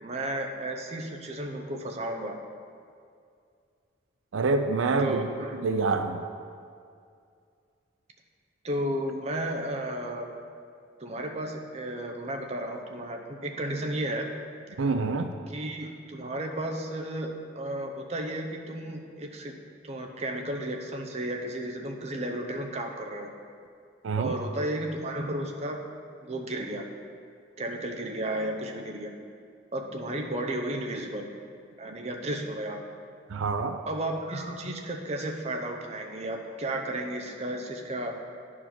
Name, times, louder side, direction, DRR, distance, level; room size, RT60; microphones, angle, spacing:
voice 1, 0.0-2.4 5.0-5.6 8.6-10.3 11.0-14.3 15.5-19.5 19.8-23.3 24.2-25.8 26.2-26.9 27.6-29.1 29.7-31.3 31.8-32.8 33.9-38.2, right 1 dB, 35° right, 2 dB, 0.7 m, -33 dB
voice 2, 4.3-5.2 5.6-6.3 14.8-15.3 24.0-24.3 33.3-33.8, right 3 dB, 85° right, 8 dB, 0.4 m, -26 dB
9.8 x 4.6 x 5.9 m, 2.3 s
head